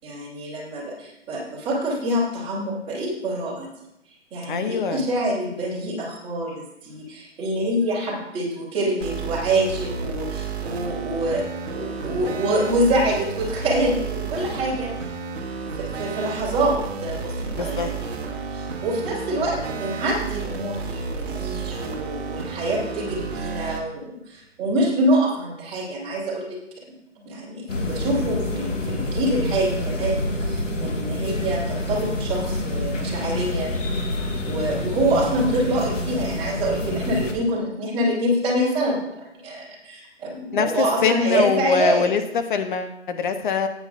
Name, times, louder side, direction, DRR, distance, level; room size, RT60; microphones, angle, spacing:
voice 1, 0.0-3.7 4.3-11.4 11.7-15.1 15.6-26.6 26.9-33.8 34.5-42.1, right 1 dB, 15° right, -6 dB, 3.2 m, -26 dB
voice 2, 4.5-5.1 17.5-17.9 40.5-43.7, left 6 dB, 40° left, 7 dB, 0.9 m, -23 dB
sound 1, 9.0-23.8, right 5 dB, 60° right, 1.4 m, -31 dB
sound 2, 27.7-37.3, left 1 dB, 85° left, 2.0 m, -27 dB
13.5 x 8.9 x 2.5 m, 0.85 s
hypercardioid pair, 140°, 37 cm